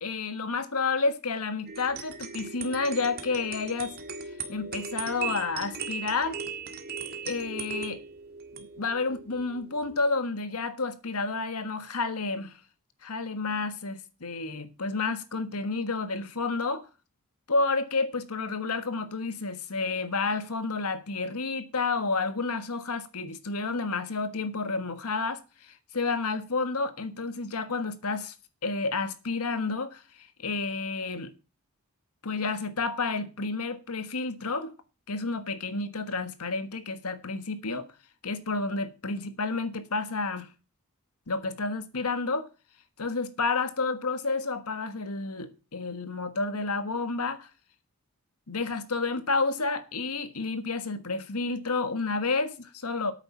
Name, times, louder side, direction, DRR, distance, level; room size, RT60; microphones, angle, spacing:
voice 1, 0.0-3.9 4.5-6.4 7.2-8.0 8.5-12.5 13.0-16.9 17.5-28.3 28.6-30.0 30.4-31.3 32.2-34.7 35.1-37.9 38.2-40.5 41.3-42.5 43.0-47.5 48.5-53.1, left 3 dB, 90° left, 1.5 m, -30 dB
sound 1, 1.7-10.0, right 5 dB, 45° right, 1.8 m, -38 dB
9.0 x 7.2 x 7.1 m
head